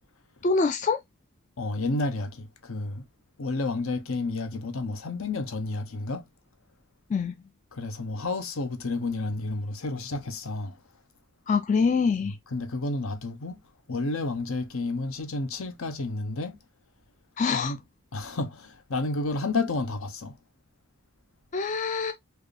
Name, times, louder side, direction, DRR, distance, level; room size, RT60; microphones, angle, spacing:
voice 1, 0.4-1.0 7.1-7.3 11.5-12.4 17.4-17.7 21.5-22.1, left 4 dB, 35° left, 0.3 m, -24 dB
voice 2, 1.6-3.1 3.4-6.3 7.7-10.8 12.2-13.6 13.9-16.6 17.5-17.8 18.1-20.4, left 2 dB, 70° left, 0.8 m, -31 dB
4.4 x 2.6 x 3.2 m
head